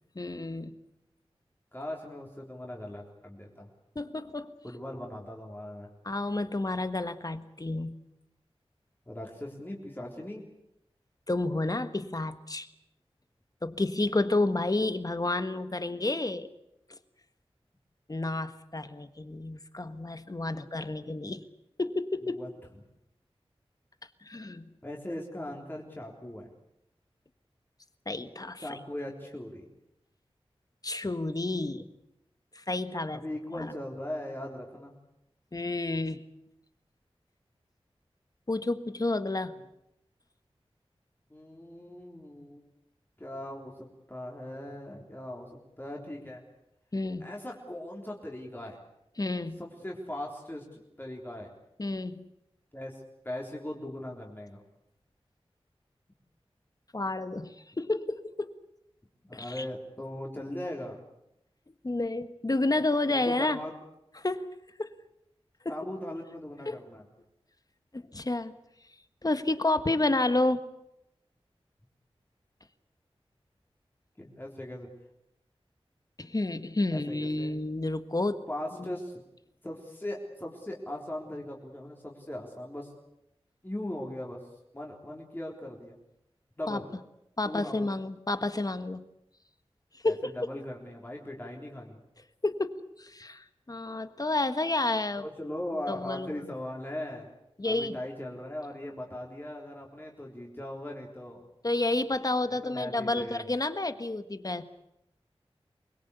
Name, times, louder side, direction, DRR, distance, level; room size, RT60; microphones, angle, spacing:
voice 1, 0.2-0.7 4.0-4.5 6.1-7.9 11.3-12.7 13.6-16.5 16.9-17.0 18.1-21.4 21.8-22.4 24.2-24.6 28.1-28.8 30.8-31.9 32.6-33.2 33.5-33.7 35.5-36.2 38.5-39.6 46.9-47.3 49.2-49.6 51.8-52.3 56.9-58.6 59.3-59.7 61.8-63.6 64.2-64.4 64.8-64.9 65.7-65.8 66.7-66.8 67.9-68.6 69.2-70.6 76.2-78.4 78.8-78.9 86.7-86.8 87.4-89.0 90.0-90.3 92.4-95.3 95.9-96.3 97.6-98.0 101.6-104.7, left 2 dB, 35° left, 11 dB, 1.6 m, -30 dB
voice 2, 1.7-3.7 4.6-5.9 9.1-10.4 20.5-20.6 21.1-21.2 22.3-22.5 24.8-26.5 28.6-29.7 33.1-34.9 41.3-42.6 43.2-46.4 47.2-48.8 49.6-51.5 52.7-54.6 59.2-61.0 63.1-63.7 65.7-67.0 74.2-74.9 76.9-77.6 78.5-79.2 79.6-82.9 83.6-84.4 84.7-86.0 86.6-86.8 87.4-87.9 90.0-92.0 95.2-97.3 97.6-101.4 102.5-103.5, left 1 dB, 20° left, -1 dB, 3.7 m, -39 dB
24.0 x 21.5 x 8.3 m, 0.83 s
wide cardioid pair, 55°, 10 cm